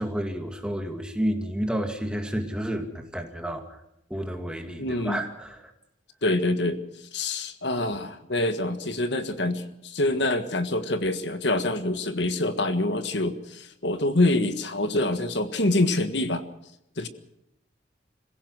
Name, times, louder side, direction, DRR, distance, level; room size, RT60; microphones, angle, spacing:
voice 1, 0.0-3.8 4.1-5.7, equal, 5° right, 4 dB, 2.2 m, -30 dB
voice 2, 4.8-5.2 6.2-6.8 7.1-16.4 17.0-17.1, left 2 dB, 70° left, 9 dB, 1.6 m, -26 dB
26.0 x 16.5 x 6.3 m, 0.83 s
head